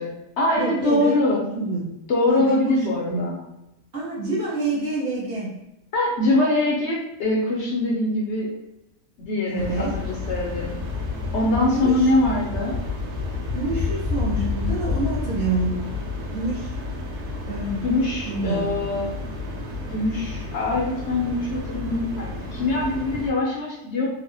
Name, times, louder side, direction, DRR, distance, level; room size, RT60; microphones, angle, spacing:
voice 1, 0.0-1.4 2.1-3.4 5.9-8.5 9.2-10.7 11.3-12.8 17.8-19.1 19.9-24.1, left 2 dB, 65° left, -3 dB, 0.7 m, -23 dB
voice 2, 0.6-1.8 2.3-3.2 3.9-5.5 9.5-9.9 11.7-12.1 13.5-15.8 16.3-16.7 17.5-17.8 18.2-18.7, right 2 dB, 45° right, -7 dB, 1.1 m, -27 dB
sound 1, 9.5-23.3, left 3 dB, 85° right, 1.1 m, -30 dB
3.2 x 2.0 x 2.6 m, 0.90 s
omnidirectional pair, 1.6 m